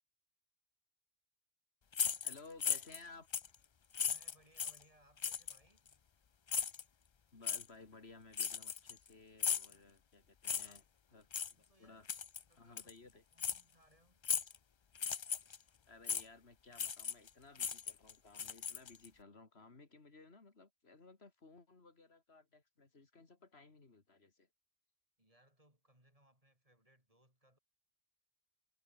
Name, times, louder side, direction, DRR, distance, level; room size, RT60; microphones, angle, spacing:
sound 1, 1.9-3.0 3.3-3.5 3.9-4.8 5.2-5.6 6.5-6.8 7.4-7.6 8.3-9.1 9.4-9.7 10.4-10.8 11.3-11.5 12.1-12.4 12.8-12.9 13.4-13.6 14.2-14.6 14.9-15.6 16.1-16.2 16.7-17.3 17.5-19.1, left 7 dB, 45° left, 0.4 m, -37 dB
voice 1, 2.2-3.3 7.3-10.8 11.1-12.1 12.6-13.2 15.6-24.5, left 3 dB, 80° left, 2.8 m, -58 dB
voice 2, 4.0-5.9 9.7-9.9 10.6-10.8 11.5-12.1 12.5-14.2 25.2-27.6, right 1 dB, 35° right, 7.8 m, -70 dB
omnidirectional pair, 1.1 m